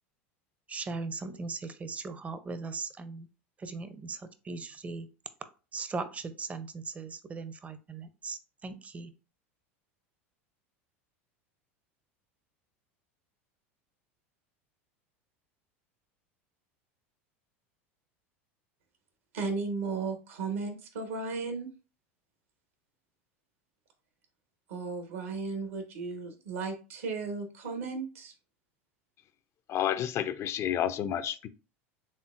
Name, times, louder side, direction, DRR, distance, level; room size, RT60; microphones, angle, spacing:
voice 1, 0.7-3.3 3.6-5.1 5.7-9.1, right 4 dB, 20° right, 0.5 m, -39 dB
voice 2, 19.3-21.7 24.7-28.3, right 4 dB, 75° right, 1.1 m, -35 dB
voice 3, 29.7-31.5, left 10 dB, 40° left, 0.4 m, -30 dB
4.3 x 3.4 x 2.4 m
hypercardioid pair, 85°, 7 cm